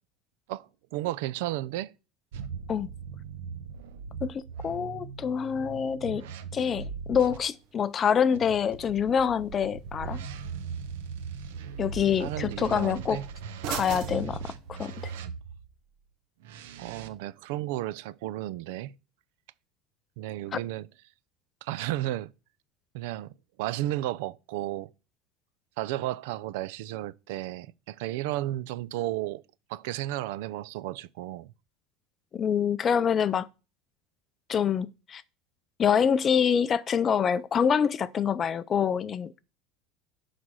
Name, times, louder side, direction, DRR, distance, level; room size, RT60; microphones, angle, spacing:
voice 1, 0.5-1.9 12.2-13.2 16.8-18.9 20.2-20.9 21.6-22.3 22.9-23.3 23.6-24.9 25.8-29.4 29.7-31.5, right 15 dB, 75° right, 0.5 m, -33 dB
sound 1, 2.3-7.4 8.3-15.7 16.4-17.1, right 6 dB, 90° right, 1.0 m, -39 dB
voice 2, 4.2-6.3 6.5-10.2 11.8-13.2 13.7-15.1 20.5-20.6 32.3-33.5 34.5-35.2 35.8-39.4, left 7 dB, 25° left, 0.4 m, -26 dB
sound 2, 7.2-15.2, right 11 dB, 50° right, 0.8 m, -45 dB
11.0 x 4.2 x 6.3 m
supercardioid pair, 155°, 0 cm